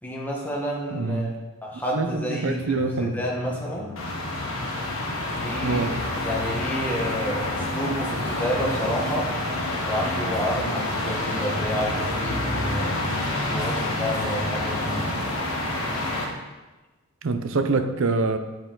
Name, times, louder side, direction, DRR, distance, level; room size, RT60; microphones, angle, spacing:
voice 1, 0.0-1.3 1.6-4.0 5.3-5.8 6.2-9.3 9.8-13.1 13.4-15.0, equal, 10° left, -4 dB, 1.2 m, -29 dB
voice 2, 0.9-1.3 1.9-3.2 5.6-6.0 17.2-18.4, right 3 dB, 60° right, 8 dB, 0.5 m, -25 dB
Drum, 2.6-15.7, left 2 dB, 85° left, 0.7 m, -43 dB
sound 1, 4.0-16.2, left 1 dB, 65° left, 1.3 m, -28 dB
8.0 x 4.5 x 3.8 m, 1.1 s
head